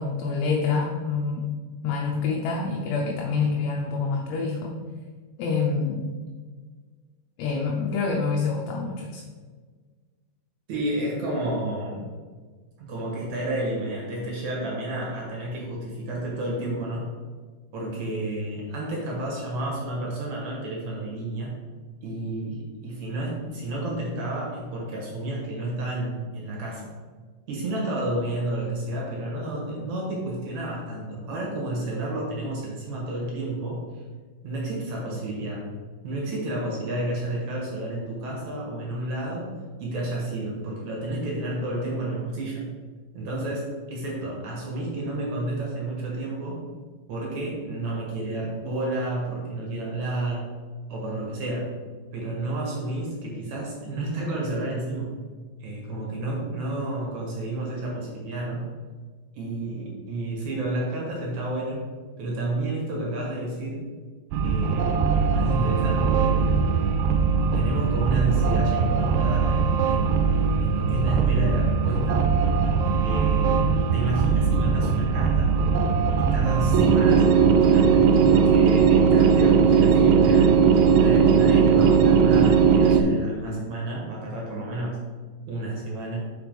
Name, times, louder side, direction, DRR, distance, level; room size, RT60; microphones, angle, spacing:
voice 1, 0.0-1.5 1.8-4.8 5.4-6.1 7.4-9.2, left 4 dB, 80° left, -1 dB, 2.8 m, -26 dB
voice 2, 10.7-12.1 12.8-17.1 17.7-21.6 22.0-26.9 27.5-34.0 34.4-35.7 36.0-42.7 43.1-46.6 47.1-50.5 50.9-51.7 52.1-55.2 55.6-58.7 59.3-61.8 62.2-63.8 64.4-66.7 67.5-72.3 73.0-75.6 76.2-80.6 80.9-85.0 85.5-86.2, right 2 dB, 60° right, -3 dB, 2.2 m, -31 dB
sound 1, 64.3-83.0, right 6 dB, 80° right, 2.5 m, -19 dB
6.0 x 4.9 x 5.1 m, 1.5 s
omnidirectional pair, 5.0 m